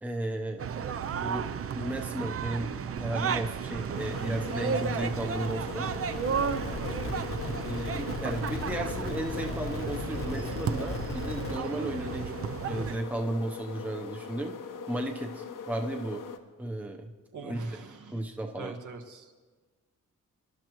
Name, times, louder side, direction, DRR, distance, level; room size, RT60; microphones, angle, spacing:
voice 1, 0.0-5.9 7.6-14.5 14.9-16.2 16.6-17.1 17.4-17.7 18.1-18.7, right 1 dB, 5° right, 2 dB, 0.7 m, -34 dB
sound 1, 0.6-13.0, right 7 dB, 45° right, 0.5 m, -33 dB
sound 2, 3.9-16.4, left 6 dB, 85° left, 1.0 m, -41 dB
voice 2, 3.9-4.5 7.5-7.8 17.3-18.2 18.6-19.3, right 4 dB, 75° right, 4 dB, 1.5 m, -44 dB
sound 3, 6.1-11.6, left 4 dB, 40° left, 0.9 m, -37 dB
25.0 x 12.0 x 3.0 m, 1.4 s
wide cardioid pair, 170°, 31 cm